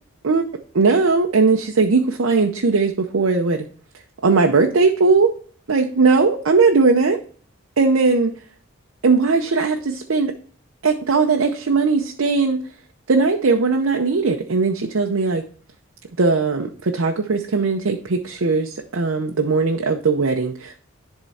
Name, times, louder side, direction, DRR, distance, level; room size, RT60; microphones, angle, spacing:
voice 1, 0.2-3.7 4.2-5.3 5.7-7.2 7.8-8.3 9.0-10.3 10.8-12.6 13.1-15.4 16.2-20.8, right 4 dB, 80° right, 3 dB, 0.7 m, -19 dB
11.0 x 3.7 x 4.2 m, 0.43 s
head